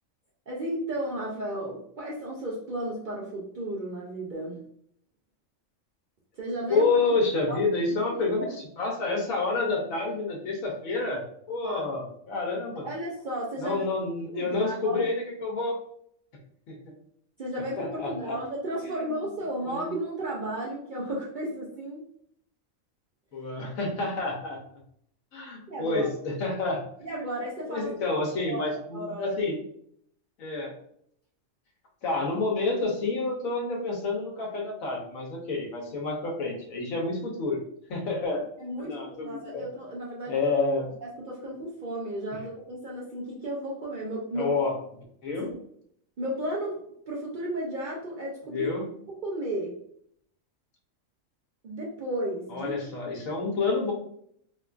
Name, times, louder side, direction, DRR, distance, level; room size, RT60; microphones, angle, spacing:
voice 1, 0.5-4.7 6.4-7.2 7.5-7.6 8.4-8.6 11.6-11.9 12.8-13.8 14.3-15.1 17.4-22.1 25.7-26.1 27.0-27.9 28.5-29.4 38.6-40.5 41.0-44.5 45.4-45.6 46.2-48.8 49.1-49.8 51.6-52.8, right 1 dB, 55° right, -4 dB, 0.5 m, -34 dB
voice 2, 6.7-8.5 8.8-12.9 13.6-15.8 16.7-16.8 17.8-18.4 19.7-19.8 23.3-24.6 25.3-26.8 27.7-29.6 30.4-30.7 32.0-37.6 37.9-38.4 38.8-39.6 40.3-40.9 44.4-44.8 45.2-45.5 48.5-48.9 52.5-53.9, left 3 dB, 85° left, 0 dB, 1.2 m, -28 dB
3.6 x 2.4 x 2.4 m, 0.68 s
omnidirectional pair, 1.4 m